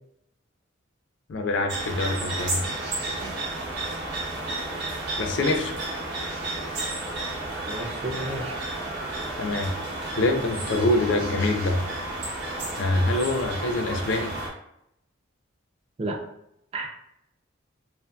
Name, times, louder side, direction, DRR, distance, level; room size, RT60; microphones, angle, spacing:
voice 1, 1.3-2.7 5.2-5.7 9.4-9.7 10.2-11.8 12.8-14.3, left 2 dB, 65° left, 5 dB, 0.4 m, -25 dB
sound 1, 1.7-14.5, right 2 dB, 60° right, 0.7 m, -32 dB
voice 2, 7.5-8.6 16.0-16.2 16.7-16.9, right 2 dB, 30° right, 3 dB, 0.3 m, -33 dB
2.7 x 2.5 x 2.2 m, 0.78 s
head